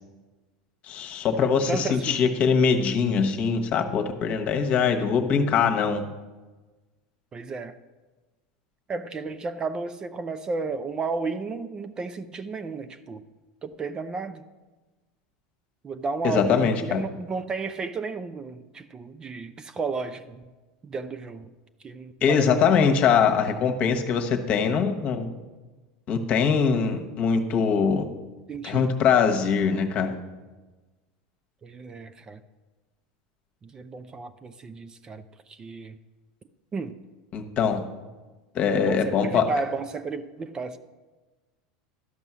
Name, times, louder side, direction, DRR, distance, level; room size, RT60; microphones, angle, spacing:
voice 1, 0.8-6.0 16.2-17.0 22.2-25.3 26.1-28.0 28.6-30.1 37.3-37.8 38.5-39.5, left 6 dB, 45° left, 5 dB, 1.2 m, -22 dB
voice 2, 1.4-2.2 7.3-7.7 8.9-13.2 13.6-14.4 15.8-20.4 20.8-21.5 21.8-22.8 28.5-28.9 31.6-32.4 33.6-36.0 36.7-37.0 38.7-40.8, right 4 dB, 25° right, 10 dB, 0.5 m, -33 dB
12.5 x 5.4 x 6.1 m, 1.2 s
supercardioid pair, 115°, 3 cm